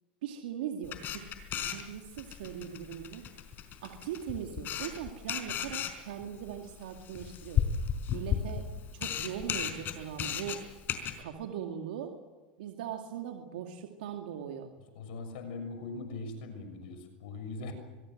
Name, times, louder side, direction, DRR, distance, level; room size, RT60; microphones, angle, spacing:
voice 1, 0.2-1.2 1.5-3.2 3.8-7.6 8.1-8.7 8.9-10.6 11.2-12.1 12.6-14.7, right 9 dB, 80° right, 3 dB, 2.4 m, -40 dB
Camera, 0.8-11.2, left 8 dB, 40° left, 4.6 m, -35 dB
voice 2, 14.9-17.7, left 3 dB, 70° left, 7 dB, 6.7 m, -40 dB
25.0 x 21.0 x 7.9 m, 1.2 s
hypercardioid pair, 110°, 5 cm